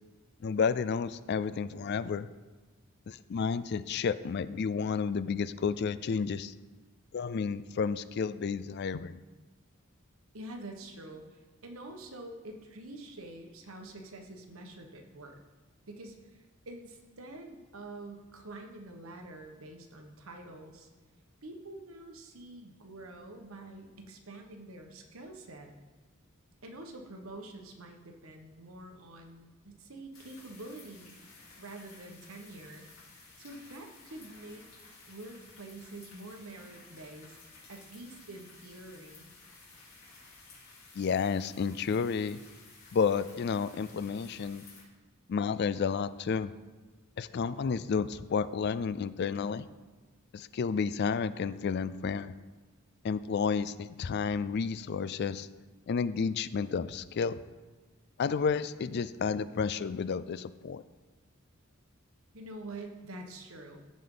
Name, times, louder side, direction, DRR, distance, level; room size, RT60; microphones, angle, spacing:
voice 1, 0.4-2.3 3.1-6.5 7.1-9.2 40.9-42.4 42.9-44.6 45.3-46.5 47.2-49.7 50.3-52.3 53.0-55.5 55.9-57.4 58.2-60.8, left 5 dB, 50° left, 15 dB, 0.3 m, -31 dB
voice 2, 10.3-15.4 15.9-20.9 21.4-25.7 26.6-31.2 31.5-32.9 33.4-34.6 35.1-37.4 37.7-39.3 62.3-63.8, right 2 dB, 80° right, 3 dB, 1.3 m, -46 dB
sound 1, 30.1-44.8, left 3 dB, 85° left, 3.3 m, -55 dB
15.0 x 5.3 x 3.9 m, 1.3 s
head